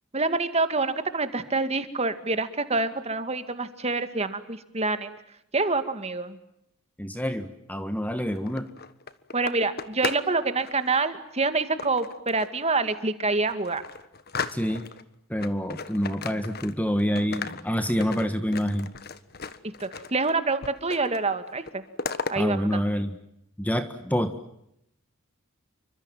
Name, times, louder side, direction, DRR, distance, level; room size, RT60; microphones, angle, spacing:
voice 1, 0.1-5.1 5.5-6.4 9.3-13.8 19.8-21.8 22.3-22.8, right 3 dB, 30° right, 10 dB, 2.2 m, -26 dB
voice 2, 7.0-8.7 14.5-14.9 15.3-18.9 22.3-23.1 23.6-24.4, equal, 5° left, 9 dB, 1.5 m, -27 dB
sound 1, 8.3-10.3 10.6-11.0 11.8-12.6 13.1-13.2 13.5-15.0 15.4-16.9 17.2-20.3 20.6-21.2 21.5-22.3, left 5 dB, 45° left, 1.5 m, -36 dB
29.0 x 25.5 x 7.4 m, 0.79 s
head